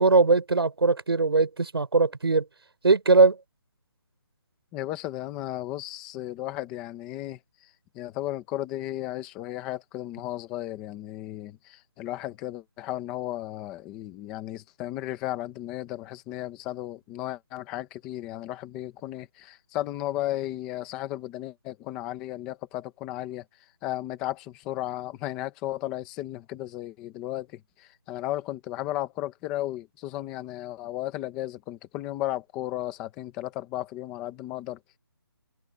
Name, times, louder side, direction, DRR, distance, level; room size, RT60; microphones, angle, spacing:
voice 1, 0.0-2.4 2.8-3.4, right 4 dB, 85° right, 5.3 m, -20 dB
voice 2, 4.7-7.4 7.9-23.4 23.8-34.8, left 14 dB, 5° left, 0.6 m, -34 dB
hypercardioid pair, 180°, 13 cm